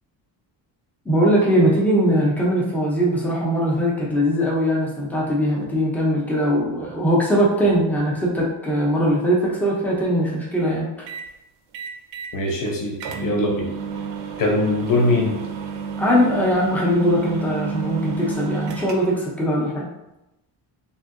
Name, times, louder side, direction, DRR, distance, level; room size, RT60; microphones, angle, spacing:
voice 1, 1.1-11.1 16.0-19.9, equal, 5° left, -4 dB, 0.4 m, -20 dB
sound 1, 11.1-11.3 11.7-12.3 12.7-12.8 13.0-19.3, right 6 dB, 65° right, 0.5 m, -31 dB
voice 2, 12.3-13.0 13.2-13.7 14.4-15.4, left 2 dB, 45° left, 0 dB, 0.7 m, -21 dB
3.5 x 2.7 x 2.5 m, 0.93 s
cardioid pair, 180°, 47 cm